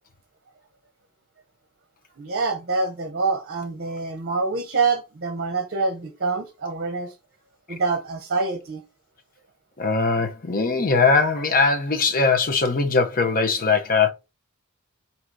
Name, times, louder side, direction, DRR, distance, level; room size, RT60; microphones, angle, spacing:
voice 1, 2.2-7.2 7.7-8.8, right 4 dB, 50° right, 0.7 m, -26 dB
voice 2, 9.8-14.1, left 4 dB, 40° left, 0.8 m, -20 dB
3.8 x 2.8 x 4.5 m
head